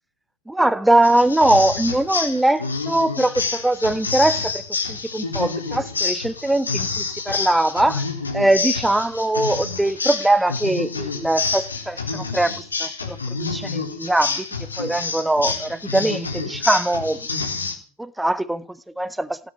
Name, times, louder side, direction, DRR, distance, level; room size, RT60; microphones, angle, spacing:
voice 1, 0.5-4.6 4.9-8.0 8.3-14.5 14.8-17.5 18.0-19.4, right 1 dB, 5° right, 1.2 m, -21 dB
sound 1, 1.0-17.8, left 4 dB, 75° left, 3.7 m, -28 dB
17.0 x 9.6 x 8.5 m
figure-of-eight pair, 90°, 0 cm